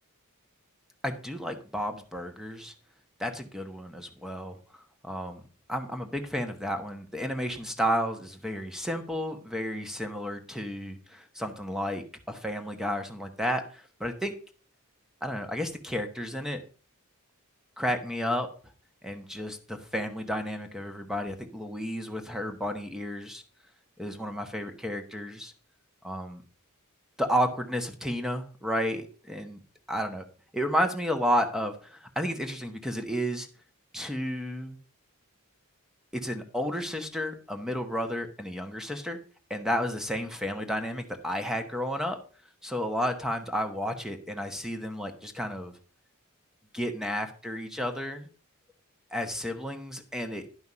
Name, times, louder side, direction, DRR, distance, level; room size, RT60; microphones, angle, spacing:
voice 1, 1.0-2.7 3.2-4.6 5.0-5.4 5.7-14.3 15.2-16.6 17.8-18.5 19.0-23.4 24.0-25.5 26.0-26.4 27.2-29.6 29.9-30.2 30.5-33.5 33.9-34.8 36.1-39.2 39.5-42.2 42.6-45.7 46.7-48.3 49.1-50.5, equal, ahead, 6 dB, 1.2 m, -32 dB
11.0 x 5.7 x 5.6 m, 0.39 s
head